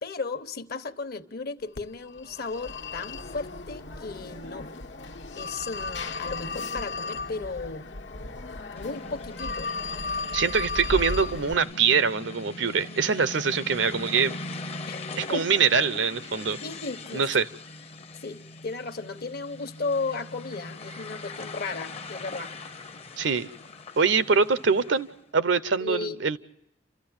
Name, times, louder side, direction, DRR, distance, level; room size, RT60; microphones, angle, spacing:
voice 1, 0.0-4.7 5.3-7.9 8.7-9.7 14.9-15.5 16.6-17.3 18.2-22.5 25.8-26.4, left 3 dB, 55° left, 11 dB, 1.1 m, -35 dB
Telephone, 1.8-11.5, left 3 dB, 80° left, 1.2 m, -35 dB
sound 1, 8.8-25.2, left 2 dB, 35° left, 0.7 m, -41 dB
voice 2, 10.3-14.4 15.2-16.6 17.1-17.5 23.2-23.5 24.0-25.1 25.3-26.4, right 5 dB, 85° right, 16 dB, 0.8 m, -24 dB
29.5 x 14.0 x 8.9 m, 0.84 s
head